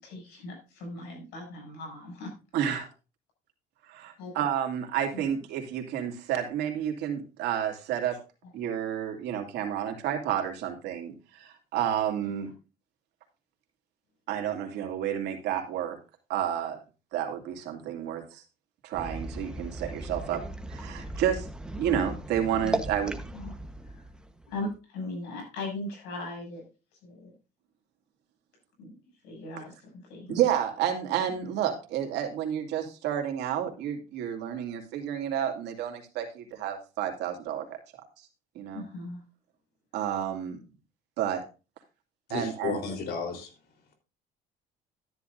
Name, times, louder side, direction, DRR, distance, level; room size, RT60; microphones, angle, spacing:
voice 1, 0.0-2.3 2.6-2.8 4.2-4.3 5.1-5.3 12.2-12.3 22.6-22.8 23.3-23.6 23.8-24.1 24.5-26.6 27.0-27.3 28.8-28.9 29.2-30.4 31.6-31.7 38.7-39.2, left 2 dB, 90° left, 7.3 m, -39 dB
voice 2, 2.5-2.9 3.9-8.2 8.5-12.5 14.3-16.0 16.3-16.8 17.1-18.4 18.8-20.4 20.7-21.5 21.7-23.2 30.3-37.7 38.5-38.8 39.9-40.6 41.2-41.4 42.3-42.8, right 9 dB, 85° right, 2.7 m, -30 dB
sound 1, 18.9-24.7, right 1 dB, 5° right, 1.1 m, -37 dB
voice 3, 42.3-43.5, left 5 dB, 70° left, 3.8 m, -33 dB
13.0 x 10.5 x 2.6 m
cardioid pair, 110°, 17 cm